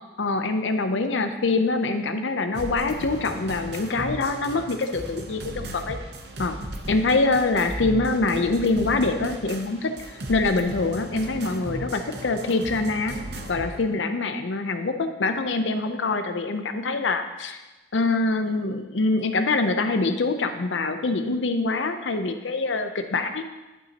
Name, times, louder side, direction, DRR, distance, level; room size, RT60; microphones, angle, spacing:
voice 1, 0.2-6.0 6.4-6.6 6.9-13.2 13.5-17.6 17.9-23.4, left 3 dB, 80° left, 8 dB, 0.6 m, -24 dB
sound 1, 2.5-13.8, right 1 dB, 60° right, 0.8 m, -36 dB
11.5 x 5.4 x 2.9 m, 1.1 s
head